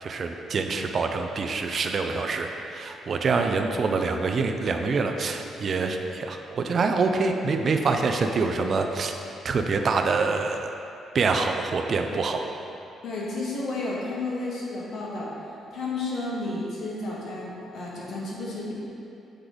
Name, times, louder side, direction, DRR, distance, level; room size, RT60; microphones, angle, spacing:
voice 1, 0.0-9.2 9.4-10.8 11.1-12.4, right 4 dB, 50° right, 5 dB, 0.4 m, -25 dB
voice 2, 13.0-18.7, left 2 dB, 65° left, -5 dB, 1.3 m, -32 dB
7.8 x 3.3 x 3.8 m, 2.8 s
cardioid pair, 90°, 0 cm